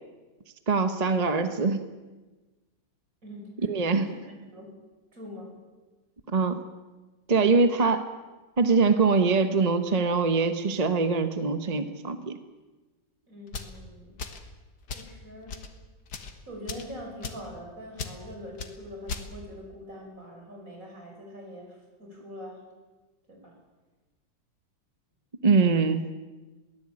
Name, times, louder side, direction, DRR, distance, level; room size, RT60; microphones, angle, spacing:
voice 1, 0.7-1.8 3.7-4.1 6.3-6.6 7.3-8.1 8.6-12.4 25.4-26.1, right 4 dB, 30° right, 9 dB, 0.9 m, -23 dB
voice 2, 3.2-3.7 4.1-4.7 5.1-5.6 13.3-14.2 14.9-15.6 16.5-22.6 23.3-23.5, equal, 50° right, 1 dB, 6.5 m, -43 dB
sound 1, 13.5-13.8 14.2-14.5 14.9-15.1 15.5-15.7 16.1-16.3 16.7-16.9 17.2-17.5 18.0-18.2 18.6-18.7 19.1-19.3, left 4 dB, 70° left, 2.2 m, -37 dB
22.5 x 17.0 x 8.6 m, 1.2 s
omnidirectional pair, 1.9 m